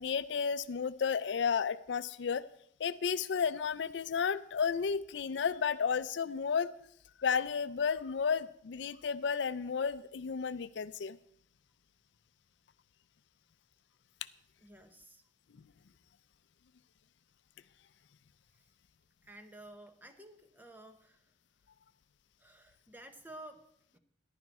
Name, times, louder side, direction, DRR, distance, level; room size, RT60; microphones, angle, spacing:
voice 1, 0.0-2.5 2.8-6.7 7.2-11.2, left 6 dB, 75° left, 15 dB, 0.4 m, -32 dB
voice 2, 14.6-15.2 18.5-18.7 19.2-21.3 22.4-24.0, right 1 dB, 10° right, 7 dB, 0.9 m, -53 dB
14.0 x 11.0 x 4.2 m, 0.70 s
head